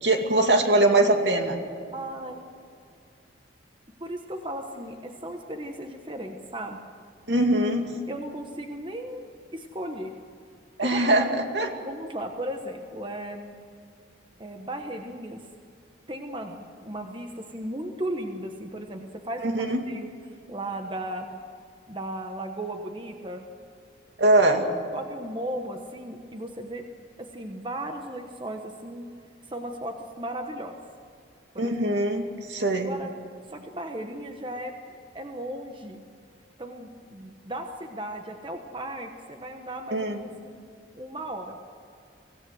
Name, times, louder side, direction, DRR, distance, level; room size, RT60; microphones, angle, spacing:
voice 1, 0.0-1.6 7.3-7.9 10.8-11.7 19.4-19.8 24.2-24.7 31.6-32.2 32.5-32.9 39.9-40.2, right 2 dB, 65° right, 3 dB, 2.4 m, -22 dB
voice 2, 1.9-2.5 4.0-6.8 8.1-10.1 10.8-11.3 11.8-13.6 14.4-15.5 16.1-19.6 19.9-20.1 20.5-21.3 21.9-23.5 24.9-26.9 27.2-29.1 29.5-30.8 31.5-31.8 32.8-33.1 33.5-36.0 36.6-40.5 41.0-41.6, right 1 dB, 25° right, 4 dB, 1.2 m, -36 dB
24.5 x 16.5 x 7.8 m, 2.4 s
head